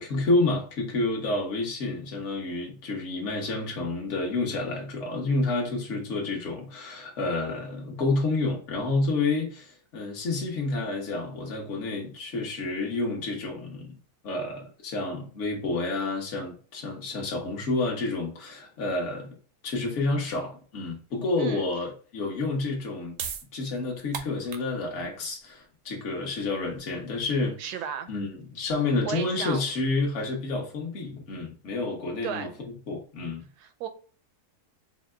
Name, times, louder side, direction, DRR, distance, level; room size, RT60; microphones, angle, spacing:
voice 1, 0.0-14.0 14.2-19.3 19.6-23.1 23.5-27.6 28.1-32.5 32.9-33.4, left 3 dB, 50° left, 1.3 m, -29 dB
voice 2, 21.4-21.7 27.6-28.1 29.0-29.6 32.2-32.6 33.6-33.9, right 8 dB, 80° right, 1.1 m, -34 dB
sound 1, 23.1-29.5, right 7 dB, 65° right, 0.8 m, -42 dB
4.5 x 2.1 x 3.3 m
omnidirectional pair, 1.7 m